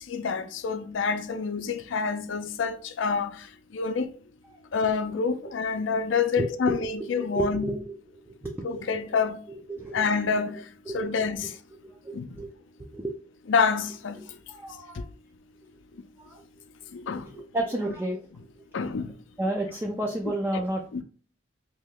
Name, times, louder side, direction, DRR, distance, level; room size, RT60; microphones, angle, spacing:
voice 1, 0.1-3.3 3.7-4.1 4.7-7.7 8.6-9.4 9.9-10.6 10.9-11.5 12.1-12.3 13.5-14.2 16.9-17.2 18.7-19.1 20.9-21.0, left 5 dB, 70° left, 0.5 m, -27 dB
voice 2, 6.4-8.0 8.2-8.9 9.5-10.1 10.9-11.1 11.8-12.5 12.9-13.1 14.5-15.1 16.3-16.4 17.2-18.2 19.4-21.0, right 1 dB, 10° right, 0.4 m, -32 dB
3.1 x 2.8 x 3.6 m
head